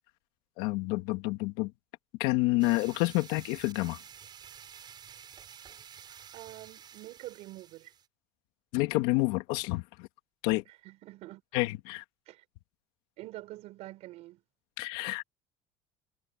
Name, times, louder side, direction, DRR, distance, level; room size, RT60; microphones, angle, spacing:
voice 1, 0.6-1.7 2.2-4.0 8.7-10.1 10.4-10.6 11.5-12.0 14.8-15.2, left 21 dB, 80° left, 2.4 m, -29 dB
sound 1, 2.6-8.1, right 8 dB, 40° right, 4.9 m, -51 dB
voice 2, 6.3-7.9 10.8-11.4 12.3-12.4 13.2-14.4, right 17 dB, 65° right, 6.6 m, -46 dB
cardioid pair, 120°, 12 cm